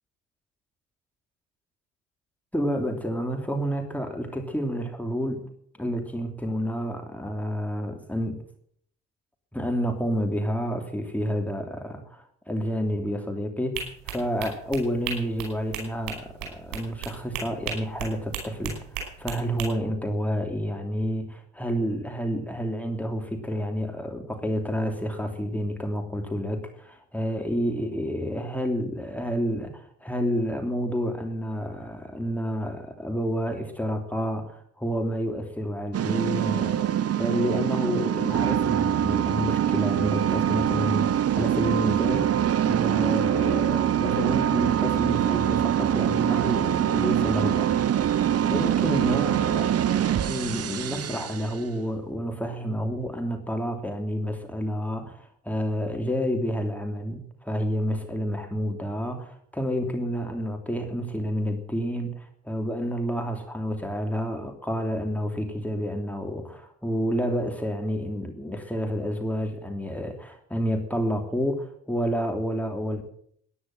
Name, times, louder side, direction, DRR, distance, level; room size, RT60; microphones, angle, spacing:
voice 1, 2.5-5.5 5.8-8.4 9.5-47.7 48.4-73.0, equal, 5° left, 3 dB, 3.0 m, -29 dB
sound 1, 13.7-19.7, right 7 dB, 70° right, 5.2 m, -35 dB
sound 2, 35.9-51.6, right 10 dB, 40° right, 0.9 m, -24 dB
14.5 x 10.0 x 7.7 m, 0.65 s
hypercardioid pair, 50°, 36 cm